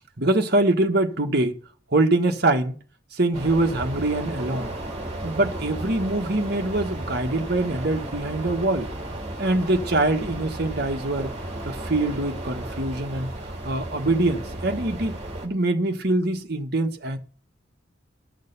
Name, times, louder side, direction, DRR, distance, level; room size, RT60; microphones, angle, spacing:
voice 1, 0.2-1.6 1.9-2.8 3.1-4.7 5.2-8.9 9.4-11.3 11.6-13.3 13.6-17.2, right 2 dB, 50° right, 1.5 m, -24 dB
sound 1, 3.3-15.5, right 1 dB, 30° right, 2.8 m, -34 dB
13.0 x 6.7 x 6.8 m
head